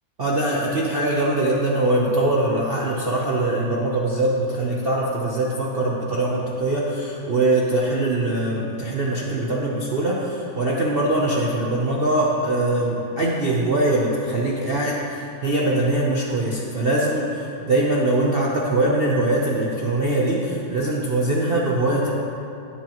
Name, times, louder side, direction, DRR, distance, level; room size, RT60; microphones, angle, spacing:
voice 1, 0.2-22.1, right 2 dB, 60° right, -4 dB, 0.6 m, -22 dB
16.0 x 8.0 x 3.0 m, 2.7 s
omnidirectional pair, 2.2 m